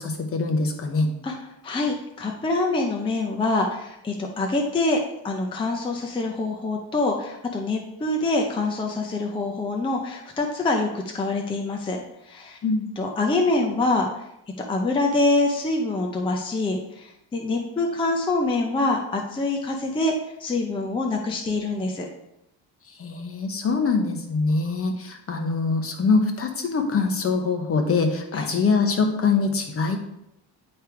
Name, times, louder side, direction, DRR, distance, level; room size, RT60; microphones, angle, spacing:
voice 1, 0.0-1.1 12.6-12.8 23.0-30.0, left 4 dB, 30° left, 5 dB, 0.9 m, -23 dB
voice 2, 1.6-5.0 5.2-12.6 13.0-14.2 14.6-22.1 28.3-28.5, left 2 dB, 10° left, 1 dB, 0.5 m, -25 dB
9.7 x 3.3 x 4.6 m, 0.83 s
cardioid pair, 165°, 43 cm